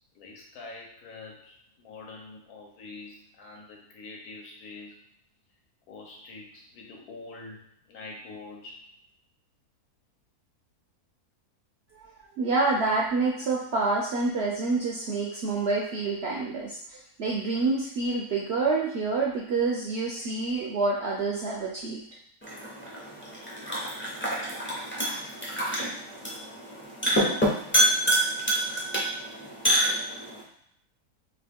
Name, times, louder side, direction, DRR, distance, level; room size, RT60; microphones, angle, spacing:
voice 1, 0.1-5.0 5.9-8.9, left 3 dB, 70° left, 0 dB, 1.3 m, -45 dB
voice 2, 12.4-22.0, right 3 dB, 65° right, -3 dB, 0.6 m, -27 dB
sound 1, 22.4-30.4, right 1 dB, 15° left, 0.4 m, -27 dB
3.0 x 2.9 x 3.4 m, 0.71 s
omnidirectional pair, 1.7 m